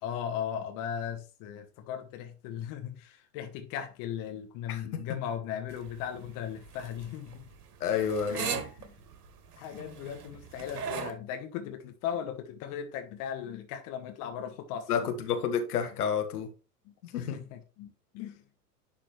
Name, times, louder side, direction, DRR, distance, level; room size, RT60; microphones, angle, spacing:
voice 1, 0.0-7.4 8.3-8.9 9.6-15.1 16.8-18.4, left 9 dB, 40° left, 1.3 m, -38 dB
voice 2, 4.7-5.0 7.8-8.6 14.9-16.5 17.0-17.4, left 7 dB, 65° left, 1.5 m, -30 dB
sound 1, 5.7-11.1, right 7 dB, 70° right, 1.4 m, -39 dB
10.5 x 3.9 x 3.2 m
figure-of-eight pair, 90°, 48 cm